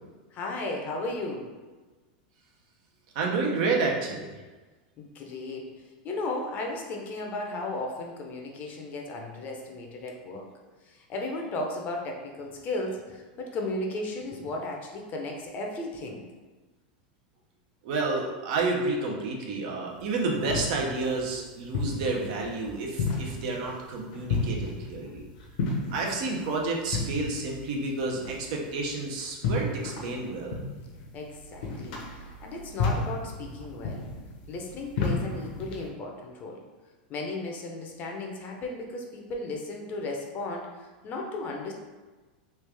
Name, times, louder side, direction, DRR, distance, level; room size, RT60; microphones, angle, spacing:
voice 1, 0.3-1.5 5.0-5.7 6.0-10.5 10.8-16.2 31.1-34.0 34.5-36.6 37.1-41.7, left 2 dB, 35° left, 1 dB, 0.6 m, -35 dB
voice 2, 3.1-4.4 17.8-25.2 25.9-30.6, right 3 dB, 60° right, 0 dB, 0.7 m, -30 dB
sound 1, 20.0-35.9, left 3 dB, 65° left, 0.8 m, -33 dB
3.2 x 2.4 x 3.4 m, 1.3 s
supercardioid pair, 130°, 5 cm